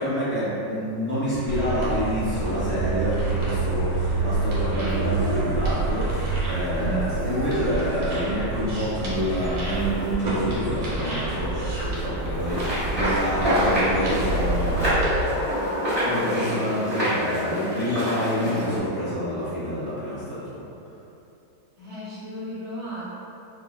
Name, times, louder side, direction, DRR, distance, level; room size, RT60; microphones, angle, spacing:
voice 1, 0.0-15.3 16.0-20.6, equal, 20° right, -13 dB, 0.9 m, -28 dB
sound 1, 1.5-15.2, right 3 dB, 90° right, 1.7 m, -27 dB
sound 2, 4.9-12.7, right 3 dB, 70° right, 0.9 m, -42 dB
voice 2, 6.7-7.0 21.8-23.0, right 1 dB, 35° left, -13 dB, 0.5 m, -34 dB
sound 3, 12.5-18.8, equal, 40° right, 1.7 m, -26 dB
4.8 x 2.3 x 2.3 m, 2.7 s
omnidirectional pair, 2.0 m